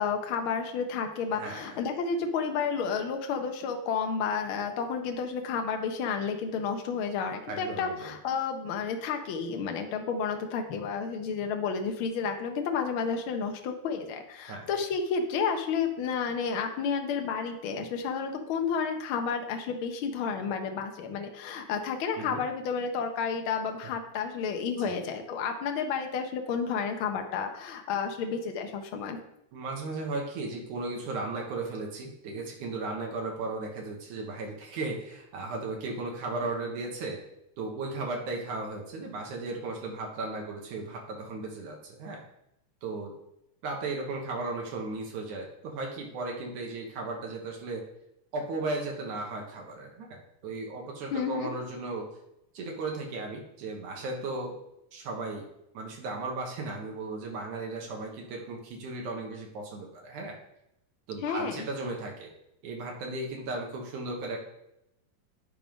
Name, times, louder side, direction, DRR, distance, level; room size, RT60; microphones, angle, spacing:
voice 1, 0.0-29.2 51.1-51.5 61.2-61.6, left 6 dB, 75° left, 4 dB, 1.2 m, -31 dB
voice 2, 1.3-1.8 7.5-8.1 14.5-14.7 22.2-22.4 24.8-25.0 29.5-37.2 37.6-42.2 42.8-43.1 43.6-47.8 48.3-52.1 52.5-54.6 54.9-55.5 55.7-60.4 61.1-62.3 62.6-64.4, right 3 dB, 75° right, 0 dB, 2.5 m, -36 dB
11.0 x 3.6 x 5.1 m, 0.81 s
omnidirectional pair, 3.6 m